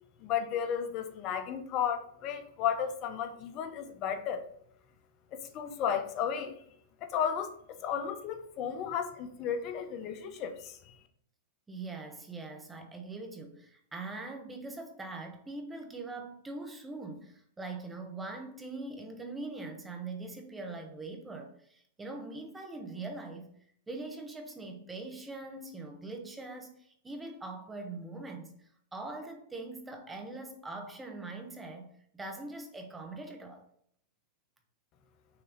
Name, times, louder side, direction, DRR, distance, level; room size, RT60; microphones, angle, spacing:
voice 1, 0.2-4.4 5.3-6.6 7.0-10.9, left 8 dB, 40° left, 7 dB, 0.9 m, -34 dB
voice 2, 11.7-23.5 23.9-28.5 28.9-33.6, right 3 dB, 10° right, 4 dB, 1.2 m, -42 dB
5.9 x 3.1 x 5.1 m, 0.66 s
hypercardioid pair, 110°, 0 cm